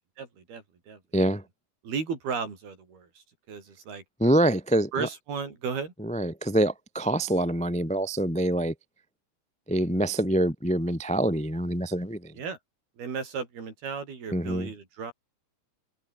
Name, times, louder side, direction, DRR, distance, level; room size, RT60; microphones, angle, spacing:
voice 1, 0.2-1.0 1.8-4.0 4.9-5.9 12.4-12.6 13.0-15.1, right 5 dB, 65° right, 7.1 m, -35 dB
voice 2, 1.1-1.4 4.2-5.1 6.0-8.7 9.7-12.3 14.3-14.7, right 1 dB, 5° left, 0.6 m, -25 dB
omnidirectional pair, 4.7 m